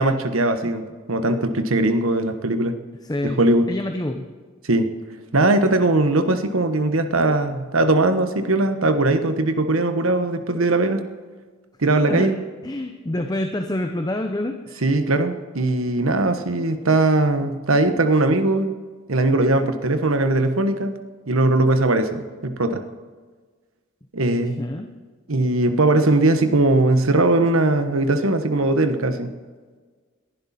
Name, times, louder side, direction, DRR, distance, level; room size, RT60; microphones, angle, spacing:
voice 1, 0.0-2.7 3.2-3.7 4.7-4.9 5.3-11.0 11.8-12.4 14.8-18.7 19.1-21.0 21.3-22.8 24.1-24.6 25.3-29.3, right 2 dB, 85° right, 9 dB, 1.2 m, -20 dB
voice 2, 3.0-3.4 3.7-4.3 12.0-12.3 12.6-14.9 24.3-24.9, left 1 dB, 20° left, 5 dB, 0.7 m, -27 dB
21.0 x 11.5 x 4.3 m, 1.5 s
head